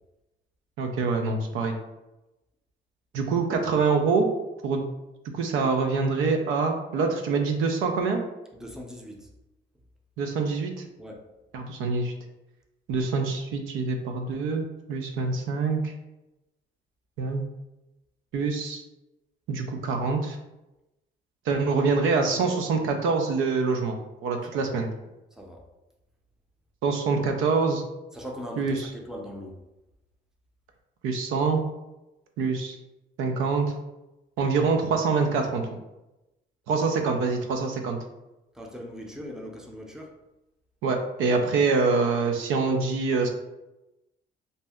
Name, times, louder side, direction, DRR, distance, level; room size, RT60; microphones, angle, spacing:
voice 1, 0.8-1.8 3.1-4.3 4.6-4.9 5.3-8.2 10.2-10.8 11.5-12.1 12.9-15.9 17.2-17.4 18.3-18.8 19.5-20.4 21.5-24.9 26.8-27.8 28.6-28.9 31.0-31.6 32.4-32.8 33.2-33.7 34.4-35.8 36.7-38.0 40.8-43.3, right 4 dB, 90° right, 4 dB, 0.5 m, -25 dB
voice 2, 8.5-9.3 11.0-11.2 24.5-24.8 25.4-25.6 28.1-29.6 38.6-40.1, equal, 5° right, 0 dB, 0.5 m, -40 dB
2.6 x 2.1 x 3.4 m, 0.97 s
cardioid pair, 90°, 20 cm